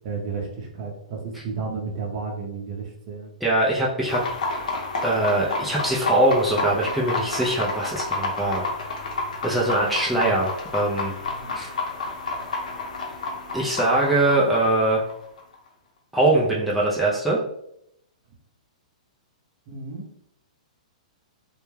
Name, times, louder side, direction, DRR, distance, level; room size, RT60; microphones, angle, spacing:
voice 1, 0.0-3.3 11.4-11.6 19.7-20.1, right 4 dB, 45° right, 0 dB, 0.7 m, -32 dB
voice 2, 3.4-4.2 5.0-8.7 9.4-11.1 11.5-11.7 13.5-15.0 16.1-17.4, right 2 dB, ahead, -6 dB, 0.4 m, -22 dB
sound 1, 4.1-15.5, left 3 dB, 80° left, 0.7 m, -30 dB
2.2 x 2.1 x 3.1 m, 0.74 s
hypercardioid pair, 135°, 4 cm